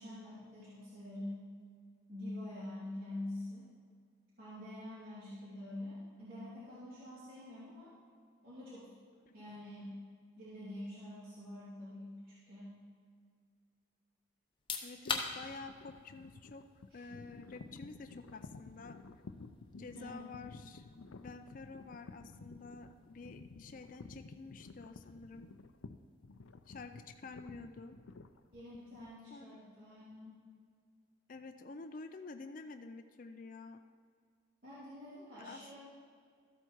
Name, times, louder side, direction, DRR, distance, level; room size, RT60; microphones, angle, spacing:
voice 1, 0.0-1.4 2.1-3.7 4.4-7.9 8.4-8.9 9.3-10.0 10.4-12.1 12.4-12.8 16.9-17.0 19.8-20.3 28.5-30.4 34.6-35.8, left 1 dB, 50° right, -11 dB, 3.2 m, -46 dB
sound 1, 14.5-27.1, left 5 dB, 25° left, 0.9 m, -48 dB
voice 2, 14.8-16.7 16.9-19.0 19.8-20.8 21.1-25.5 26.7-28.0 29.3-29.6 31.3-33.8 35.4-35.7, left 3 dB, 40° left, 7 dB, 0.4 m, -49 dB
sound 2, 15.1-29.1, left 3 dB, 90° left, 0.5 m, -53 dB
13.5 x 8.1 x 4.6 m, 2.1 s
head